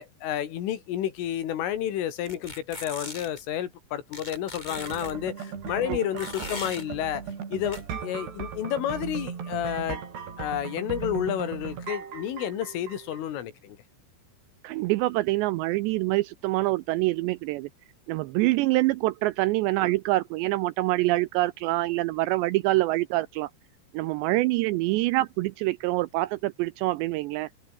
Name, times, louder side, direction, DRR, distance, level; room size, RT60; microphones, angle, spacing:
voice 1, 0.0-7.2 7.5-10.0 10.4-13.8, left 11 dB, 85° left, 5.1 m, -30 dB
sound 1, 2.2-3.4 4.1-5.1 6.2-6.8 7.7-7.8, left 1 dB, 10° left, 4.0 m, -39 dB
sound 2, 4.7-13.2, right 7 dB, 60° right, 6.0 m, -37 dB
voice 2, 14.6-17.7 18.1-23.5 23.9-27.5, right 19 dB, 85° right, 2.5 m, -25 dB
omnidirectional pair, 5.6 m